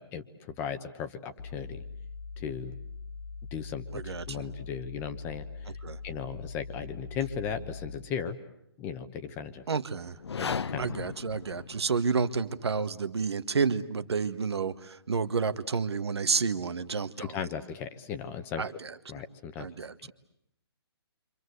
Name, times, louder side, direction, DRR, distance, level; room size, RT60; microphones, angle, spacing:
voice 1, 0.0-1.8 2.4-2.8 3.5-5.7 6.0-8.4 8.8-9.6 10.4-10.9 17.2-18.8 19.1-19.7 20.0-20.1, left 7 dB, 15° left, 9 dB, 1.1 m, -37 dB
sound 1, 1.4-8.2, left 4 dB, 45° left, 1.9 m, -42 dB
voice 2, 3.9-4.4 5.8-6.0 9.7-10.1 10.8-17.3 18.6-18.7 19.6-20.1, right 5 dB, 75° right, 13 dB, 1.6 m, -30 dB
sound 2, 10.1-12.2, left 6 dB, 75° left, 1.0 m, -36 dB
28.0 x 26.0 x 8.1 m, 0.78 s
hypercardioid pair, 160°, 14 cm